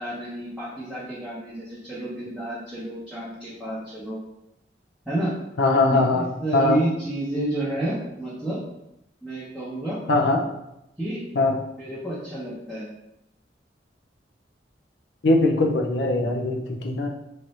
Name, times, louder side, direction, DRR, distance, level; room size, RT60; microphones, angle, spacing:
voice 1, 0.0-4.2 5.0-5.4 5.9-8.6 9.2-10.0 11.0-11.2 11.8-12.9, right 1 dB, 5° right, -11 dB, 0.9 m, -30 dB
voice 2, 5.6-6.2 6.5-6.8 10.1-10.4 11.3-11.6 15.2-17.1, left 2 dB, 75° left, 2 dB, 0.6 m, -21 dB
3.2 x 2.6 x 4.2 m, 0.85 s
head